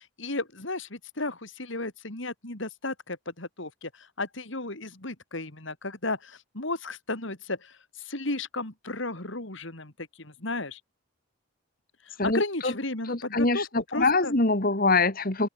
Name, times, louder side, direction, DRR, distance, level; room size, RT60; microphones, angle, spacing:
voice 1, 0.0-10.8 12.0-14.3, left 2 dB, 60° left, 3.2 m, -34 dB
voice 2, 12.2-12.7 13.1-15.5, left 3 dB, 45° left, 2.6 m, -24 dB
open air
head